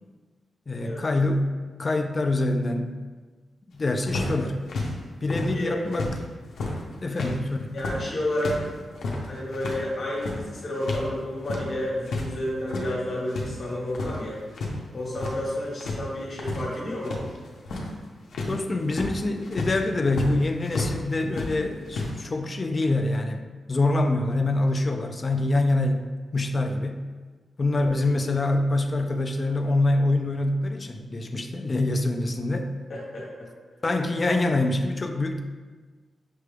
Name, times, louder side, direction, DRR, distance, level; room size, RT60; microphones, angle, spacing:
voice 1, 0.7-3.0 3.7-4.6 5.2-6.1 7.0-7.8 18.5-23.4 23.7-27.1 27.6-32.7 33.8-35.4, left 2 dB, 30° left, 5 dB, 0.3 m, -25 dB
sound 1, 4.0-6.2 6.4-11.1 11.3-12.3 12.6-13.5 13.8-14.8 15.0-15.5 15.8-21.0 21.3-22.1, left 2 dB, 80° left, 0.6 m, -32 dB
voice 2, 5.3-5.8 7.1-7.2 7.7-8.6 9.3-14.4 14.9-17.2 27.7-27.9 32.9-33.5, left 1 dB, 50° left, -5 dB, 1.2 m, -31 dB
5.9 x 2.3 x 3.2 m, 1.4 s
wide cardioid pair, 150°, 0 cm